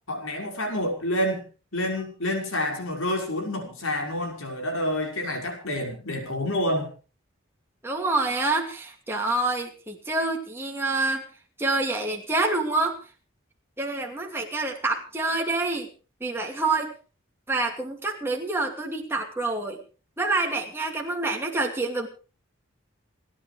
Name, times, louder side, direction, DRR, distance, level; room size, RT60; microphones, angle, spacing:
voice 1, 0.1-1.5 1.7-6.9, left 1 dB, 80° left, 3 dB, 5.6 m, -28 dB
voice 2, 7.8-11.2 11.6-13.0 13.8-15.9 16.2-16.9 17.5-19.8 20.2-22.1, right 2 dB, 10° right, 0 dB, 2.6 m, -27 dB
29.5 x 10.0 x 3.4 m, 0.35 s
head